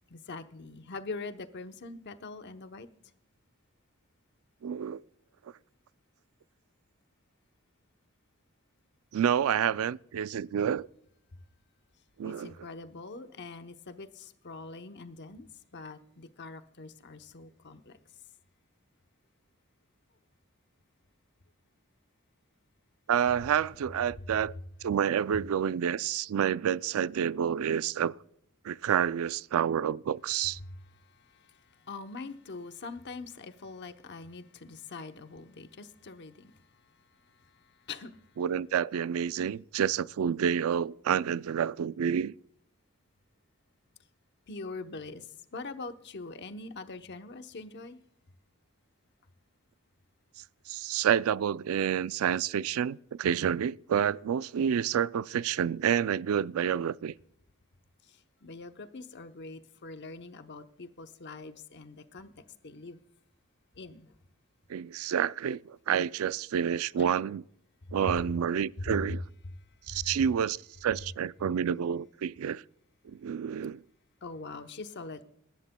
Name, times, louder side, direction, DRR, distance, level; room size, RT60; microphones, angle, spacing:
voice 1, 0.1-2.9 12.2-15.5 15.7-18.0 30.6-36.6 37.3-38.2 44.5-48.0 58.1-62.3 62.6-63.0 63.8-64.1 67.0-67.1 68.1-68.2 68.8-69.2 69.4-69.5 69.9-70.1 74.2-75.2, left 3 dB, 55° left, 0.8 m, -43 dB
voice 2, 4.6-5.0 9.1-10.9 12.2-12.5 23.1-24.5 24.8-28.1 28.6-30.6 38.4-42.3 50.7-57.1 64.7-67.4 67.9-69.2 69.9-72.6 73.1-73.8, right 8 dB, 80° right, 0.3 m, -29 dB
22.0 x 11.5 x 2.2 m
head